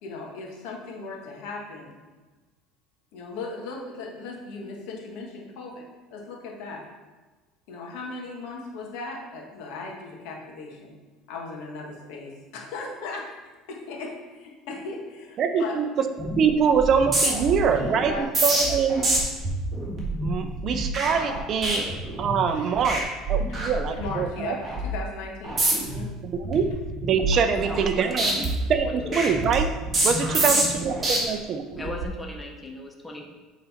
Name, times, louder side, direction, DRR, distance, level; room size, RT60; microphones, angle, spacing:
voice 1, 0.0-2.0 3.1-5.8 6.1-6.9 7.7-10.9 11.3-15.8 18.0-18.3 18.9-19.1 22.5-22.7 23.5-23.6 24.0-26.1 30.4-30.6, left 3 dB, 75° left, -1 dB, 1.7 m, -37 dB
voice 2, 15.4-15.9 16.2-19.1 20.2-21.9 22.2-24.6 26.2-26.7 27.0-28.4 28.7-29.8 30.0-31.7, right 6 dB, 40° right, 8 dB, 0.5 m, -24 dB
sound 1, 16.2-16.5 16.7-22.5 22.8-23.0 23.3-24.2 24.6-24.9 25.4-26.0 26.4-27.9 28.2-31.2 31.7-32.0, right 2 dB, 25° right, 1.9 m, -26 dB
voice 3, 27.5-28.4 28.8-29.0 30.4-30.5 31.8-33.3, left 1 dB, 10° left, 1 dB, 0.9 m, -38 dB
8.1 x 4.0 x 4.3 m, 1.3 s
cardioid pair, 140°, 0 cm